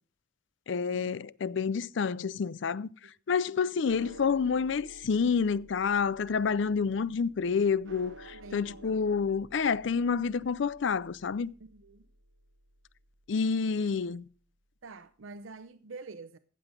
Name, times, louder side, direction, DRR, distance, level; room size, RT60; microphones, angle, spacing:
voice 1, 0.7-2.9 3.3-11.5 13.3-14.2, left 5 dB, 65° left, 0.4 m, -28 dB
sound 1, 3.9-14.3, right 2 dB, 70° right, 1.0 m, -54 dB
voice 2, 8.2-9.0 11.6-12.1 14.8-16.4, right 3 dB, 90° right, 0.7 m, -47 dB
15.0 x 7.7 x 5.1 m
head